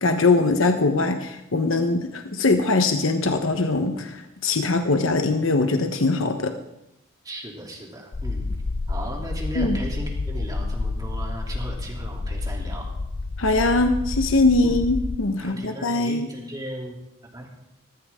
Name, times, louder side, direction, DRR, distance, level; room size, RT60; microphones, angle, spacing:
voice 1, 0.0-6.5 9.6-9.8 13.4-16.3, left 3 dB, 80° left, 6 dB, 1.0 m, -22 dB
voice 2, 7.2-8.5 8.9-12.9 14.6-14.8 15.4-17.0 17.3-17.5, right 1 dB, 20° right, -1 dB, 3.0 m, -36 dB
sound 1, 8.1-15.2, left 3 dB, 45° left, 0.5 m, -29 dB
18.5 x 14.5 x 3.6 m, 0.86 s
head